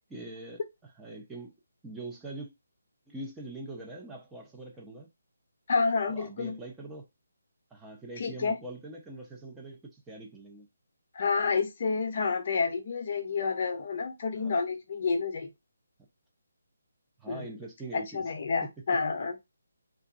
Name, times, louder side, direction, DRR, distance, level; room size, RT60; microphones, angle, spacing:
voice 1, 0.1-0.6 1.0-1.5 1.8-2.5 3.1-5.1 6.1-7.1 7.7-10.7 14.4-14.6 17.2-18.3, right 2 dB, 10° right, 0.5 m, -43 dB
voice 2, 5.7-6.6 8.2-8.6 11.1-15.5 17.3-17.5 17.9-19.4, left 4 dB, 45° left, 0.6 m, -29 dB
2.5 x 2.3 x 2.4 m
figure-of-eight pair, 150°, 0 cm